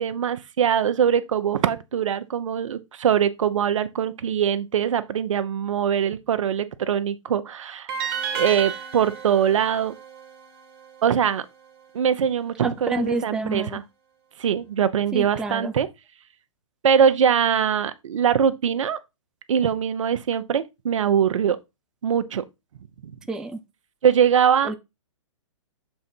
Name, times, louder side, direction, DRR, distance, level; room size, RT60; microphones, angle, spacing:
voice 1, 0.0-7.9 8.3-9.9 11.0-11.4 11.9-13.8 14.4-15.9 16.8-19.0 19.5-21.6 22.0-22.4 24.0-24.7, right 8 dB, 70° right, 0.8 m, -22 dB
sound 1, 7.9-11.0, right 7 dB, 35° right, 1.6 m, -32 dB
voice 2, 12.6-13.8 15.1-15.7 23.3-23.6 24.6-24.7, right 2 dB, 5° right, 0.4 m, -28 dB
6.8 x 3.8 x 4.4 m
hypercardioid pair, 135°, 17 cm